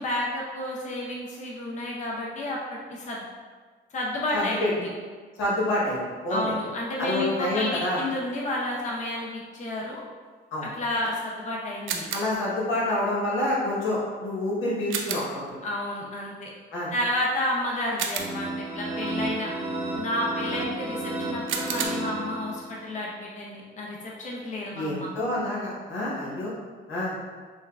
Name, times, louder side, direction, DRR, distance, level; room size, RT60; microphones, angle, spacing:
voice 1, 0.0-3.2 3.9-4.9 6.3-10.0 10.6-12.0 15.6-16.5 16.9-19.5 19.9-25.1, left 1 dB, 35° left, -3 dB, 0.6 m, -31 dB
voice 2, 4.3-4.7 5.4-6.5 7.0-8.0 10.5-10.7 12.1-15.6 16.7-16.9 24.7-26.5 26.9-27.2, left 1 dB, 85° left, -6 dB, 1.2 m, -27 dB
sound 1, 11.9-12.5 14.9-15.4 18.0-18.6 21.5-21.9, right 6 dB, 80° right, 0.4 m, -31 dB
sound 2, 18.2-22.9, right 1 dB, 15° right, 0.7 m, -32 dB
5.4 x 2.2 x 2.4 m, 1.5 s
cardioid pair, 90°, 20 cm